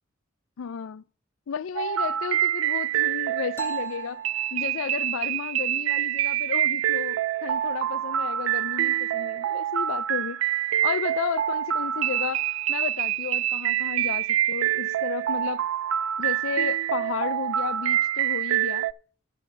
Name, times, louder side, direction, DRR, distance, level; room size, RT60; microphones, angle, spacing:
voice 1, 0.6-1.0 1.5-4.2 4.5-10.4 10.8-15.6 16.2-18.9, left 7 dB, 85° left, 0.4 m, -33 dB
sound 1, 1.8-18.9, right 12 dB, 75° right, 0.4 m, -26 dB
sound 2, 3.6-5.3, left 1 dB, 10° left, 0.7 m, -48 dB
9.2 x 4.9 x 7.6 m
head